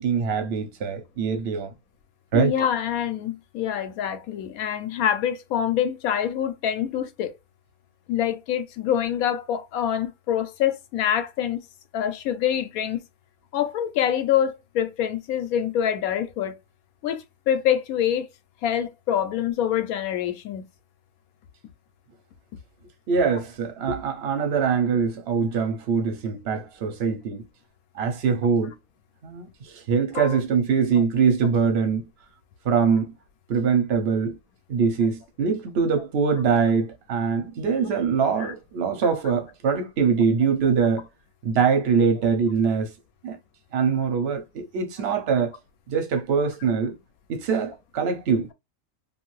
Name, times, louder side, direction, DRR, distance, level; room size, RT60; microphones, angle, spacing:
voice 1, 0.0-1.7 2.3-2.5 23.1-27.4 27.9-28.7 29.2-32.0 32.6-33.1 33.5-34.3 34.7-41.1 41.4-42.9 43.2-43.4 43.7-45.5 45.9-46.9 47.3-48.5, right 6 dB, 55° right, 0.9 m, -23 dB
voice 2, 2.3-7.3 8.1-11.6 11.9-13.0 13.5-16.6 17.0-18.3 18.6-20.7 30.1-30.4 38.4-38.5, left 9 dB, 85° left, 1.1 m, -25 dB
2.6 x 2.5 x 3.0 m
omnidirectional pair, 1.5 m